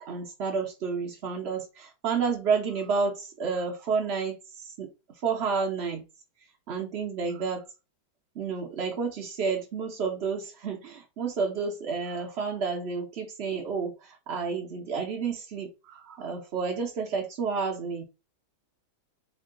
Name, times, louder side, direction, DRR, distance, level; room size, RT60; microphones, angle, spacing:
voice 1, 0.0-4.9 5.2-6.0 6.7-7.6 8.3-18.0, right 5 dB, 75° right, 1 dB, 0.5 m, -30 dB
3.5 x 2.2 x 3.7 m, 0.28 s
omnidirectional pair, 2.1 m